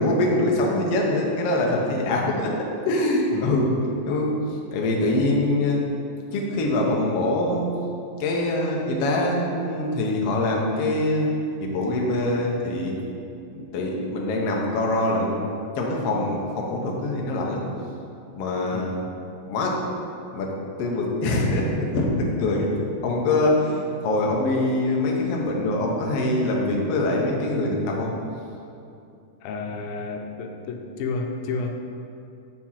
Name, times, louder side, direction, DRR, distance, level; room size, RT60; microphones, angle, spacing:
voice 1, 0.0-2.5 2.9-3.7 4.0-4.4 4.7-5.9 6.3-7.7 8.2-11.3 11.6-13.0 13.5-17.6 18.3-18.9 19.5-19.8 20.3-22.7 23.0-28.1, left 2 dB, 70° left, -1 dB, 1.5 m, -24 dB
voice 2, 3.3-3.7 18.7-19.1 29.4-31.8, left 4 dB, 85° left, 3 dB, 2.5 m, -31 dB
8.1 x 4.7 x 5.7 m, 2.6 s
omnidirectional pair, 4.1 m